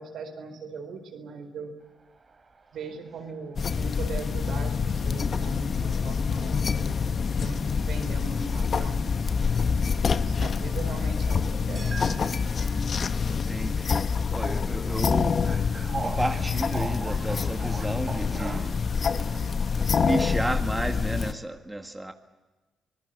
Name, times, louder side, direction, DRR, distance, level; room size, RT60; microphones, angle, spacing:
voice 1, 0.0-1.7 2.7-6.6 7.4-9.9 10.2-12.0, right 4 dB, 70° right, 7 dB, 4.5 m, -40 dB
sound 1, 2.0-20.3, right 4 dB, 40° right, 3.6 m, -44 dB
sound 2, 3.6-21.3, left 5 dB, 50° left, 1.2 m, -26 dB
voice 2, 13.2-15.4 16.0-18.8 19.1-19.2 19.9-22.1, right 1 dB, 15° right, 5 dB, 1.8 m, -32 dB
25.0 x 19.0 x 8.3 m, 1.2 s
supercardioid pair, 55°, 0 cm